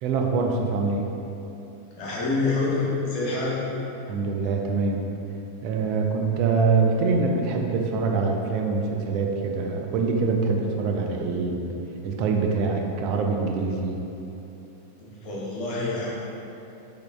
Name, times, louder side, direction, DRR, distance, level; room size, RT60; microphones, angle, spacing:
voice 1, 0.0-1.0 4.1-5.0 5.6-11.8 12.0-14.0, right 4 dB, 45° right, 1 dB, 0.4 m, -24 dB
voice 2, 2.0-3.6 15.0-16.1, left 3 dB, 40° left, -6 dB, 1.0 m, -27 dB
3.7 x 3.3 x 3.2 m, 2.9 s
figure-of-eight pair, 90°, 0 cm